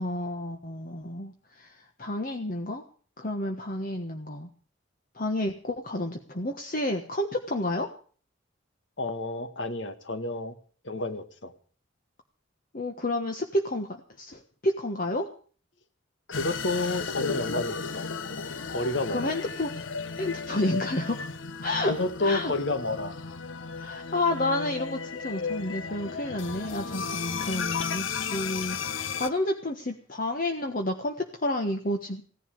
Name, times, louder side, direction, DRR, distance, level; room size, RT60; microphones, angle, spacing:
voice 1, 0.0-1.7 2.0-2.8 3.2-4.5 5.1-7.9 12.7-15.3 19.1-19.7 20.2-21.3 21.6-21.9 22.2-22.5 23.8-32.2, left 1 dB, 45° left, 4 dB, 1.3 m, -30 dB
voice 2, 9.0-10.5 10.8-11.5 16.3-18.1 18.7-19.3 21.8-23.2, left 2 dB, 70° left, 10 dB, 1.8 m, -30 dB
sound 1, 16.3-29.3, left 5 dB, 90° left, 1.0 m, -34 dB
16.5 x 11.0 x 6.5 m, 0.43 s
head